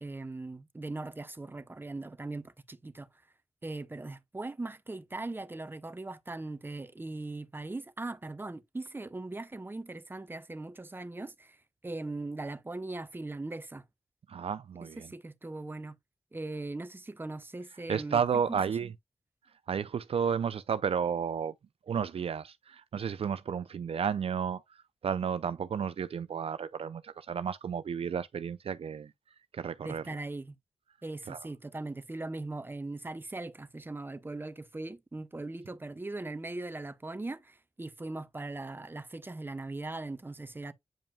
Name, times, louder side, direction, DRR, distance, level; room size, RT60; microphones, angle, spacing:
voice 1, 0.0-3.1 3.6-11.6 11.8-13.8 15.0-16.0 16.3-18.2 18.5-18.6 29.8-30.6 31.0-40.7, right 2 dB, 20° right, 0.7 m, -39 dB
voice 2, 14.3-15.1 17.9-18.9 19.7-21.5 21.9-29.1 29.5-30.2 31.3-31.5, right 7 dB, 65° right, 0.4 m, -32 dB
8.9 x 5.1 x 2.2 m
wide cardioid pair, 90°, 10 cm